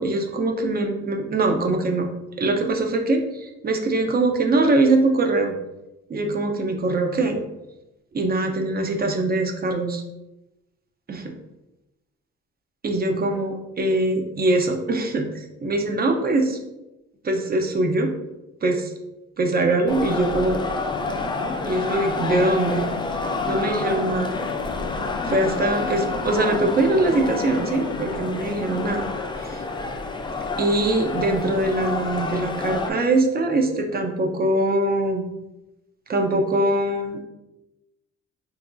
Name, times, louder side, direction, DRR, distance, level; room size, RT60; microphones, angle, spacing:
voice 1, 0.0-2.1 2.4-5.5 6.1-7.4 8.1-10.0 11.1-11.3 12.8-16.6 17.2-18.1 18.6-18.9 19.4-20.6 21.7-22.8 23.4-24.3 25.2-29.1 29.4-29.6 30.6-35.2 36.1-37.2, right 2 dB, 30° right, 4 dB, 0.5 m, -22 dB
sound 1, 19.9-32.9, left 3 dB, 15° left, 0.3 m, -29 dB
sound 2, 20.9-28.9, left 5 dB, 80° left, 0.5 m, -36 dB
4.0 x 2.6 x 2.2 m, 0.96 s
cardioid pair, 90°, 30 cm